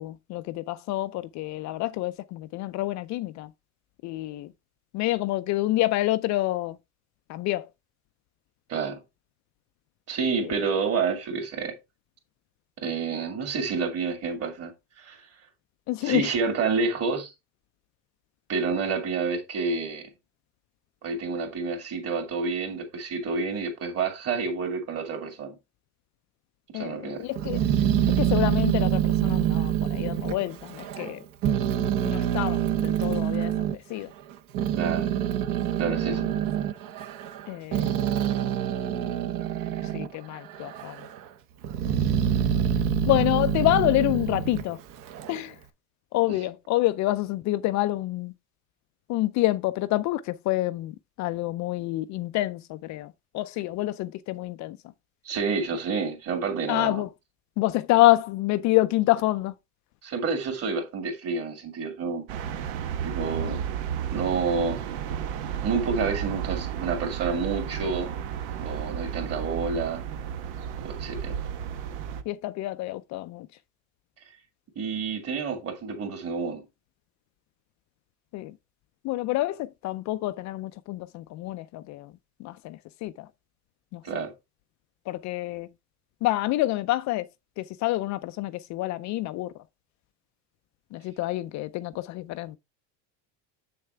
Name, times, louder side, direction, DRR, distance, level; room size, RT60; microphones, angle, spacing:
voice 1, 0.0-3.5 4.0-4.5 4.9-6.8 7.3-7.7 15.9-16.3 26.7-27.6 28.2-31.2 32.0-34.1 35.9-36.0 37.5-38.0 39.9-41.0 43.1-44.8 45.3-45.5 46.1-48.3 49.1-50.9 51.2-54.8 56.7-57.1 57.6-59.5 63.4-63.5 72.3-73.5 78.3-78.5 79.0-82.1 82.4-83.3 83.9-84.2 85.1-85.7 86.2-87.2 87.6-89.5 90.9-92.6, left 17 dB, 45° left, 0.4 m, -27 dB
voice 2, 8.7-9.0 10.1-11.7 12.8-14.7 15.0-15.3 16.0-17.3 18.5-20.1 21.0-25.6 26.7-27.3 34.8-35.1 35.8-36.2 46.3-46.4 55.2-57.0 60.0-62.3 63.0-63.7 64.1-64.8 65.6-68.1 68.6-70.0 70.8-71.3 74.8-76.6 84.0-84.3, right 5 dB, 40° right, 2.7 m, -29 dB
Growling, 27.3-31.1 31.4-33.7 34.3-40.1 40.5-41.2 41.6-45.4, right 10 dB, 55° right, 1.1 m, -26 dB
sound 1, 62.3-72.2, right 9 dB, 80° right, 1.3 m, -33 dB
7.7 x 6.6 x 3.4 m
cardioid pair, 150°, 39 cm